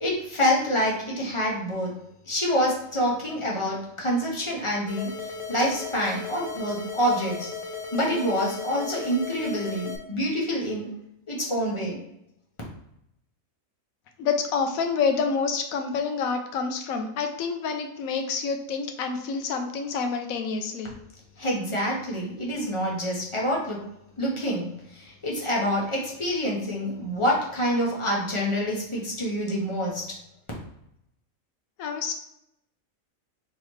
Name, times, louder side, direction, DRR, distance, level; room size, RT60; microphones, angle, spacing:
voice 1, 0.0-2.0 2.3-7.5 7.9-10.9 11.3-12.0 21.4-23.9 24.2-30.0, equal, 25° left, -3 dB, 0.9 m, -27 dB
sound 1, 4.9-10.0, left 4 dB, 45° left, 0.4 m, -36 dB
voice 2, 14.2-20.9 31.8-32.1, left 5 dB, 85° left, 5 dB, 1.1 m, -28 dB
3.9 x 3.0 x 3.1 m, 0.81 s
omnidirectional pair, 1.4 m